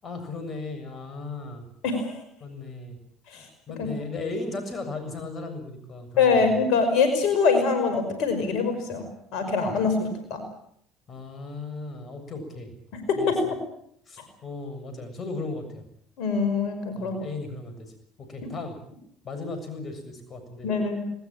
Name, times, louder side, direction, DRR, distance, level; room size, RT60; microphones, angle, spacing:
voice 1, 0.0-1.6 2.4-3.0 3.7-6.6 11.1-12.7 13.1-13.3 14.1-15.8 17.0-17.9 18.2-18.8 19.2-20.7, left 3 dB, 40° left, 8 dB, 7.2 m, -36 dB
voice 2, 6.2-9.0 9.3-10.4 13.1-13.4 16.2-17.2 20.6-21.0, left 5 dB, 65° left, 7 dB, 5.4 m, -23 dB
20.5 x 20.0 x 8.8 m, 0.69 s
hypercardioid pair, 65°, 0 cm